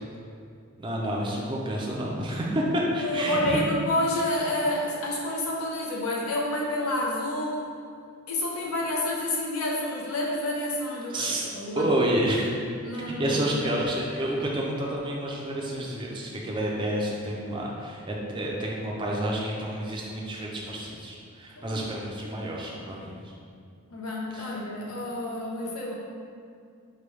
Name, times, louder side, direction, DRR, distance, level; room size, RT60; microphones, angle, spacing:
voice 1, 0.8-3.6 11.1-11.5 11.8-12.5 12.9-23.1 24.3-24.5, right 1 dB, 20° right, -3 dB, 0.4 m, -29 dB
voice 2, 3.0-7.7 8.3-12.0 12.8-13.9 21.6-21.8 23.9-25.9, left 1 dB, 85° left, -3 dB, 0.7 m, -29 dB
4.6 x 2.2 x 3.2 m, 2.3 s
head